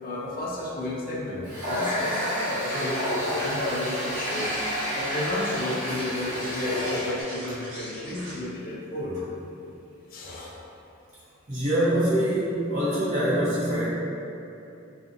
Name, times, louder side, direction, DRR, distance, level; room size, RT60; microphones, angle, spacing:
voice 1, 0.0-4.6 5.0-9.2 10.1-10.5, left 2 dB, 45° left, -3 dB, 0.4 m, -32 dB
Water tap faucet, 1.4-7.2, equal, 70° right, 1.2 m, -30 dB
sound 1, 1.4-8.4, equal, 85° right, 1.0 m, -39 dB
voice 2, 11.5-13.9, right 1 dB, 35° right, -12 dB, 0.9 m, -24 dB
2.5 x 2.4 x 2.5 m, 2.7 s
head